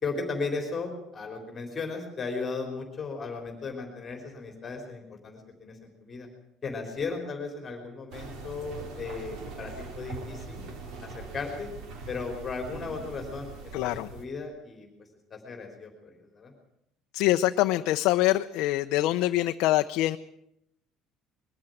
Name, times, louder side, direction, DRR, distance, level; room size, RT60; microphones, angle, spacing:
voice 1, 0.0-6.3 6.6-10.6 11.0-11.7 12.1-14.9 15.3-16.5, left 4 dB, 20° left, 3 dB, 3.6 m, -36 dB
sound 1, 8.1-14.3, right 4 dB, 55° right, 3.0 m, -42 dB
voice 2, 13.7-14.1 17.1-20.2, left 16 dB, 65° left, 6 dB, 0.7 m, -24 dB
22.0 x 13.5 x 9.1 m, 0.80 s
cardioid pair, 175°, 0 cm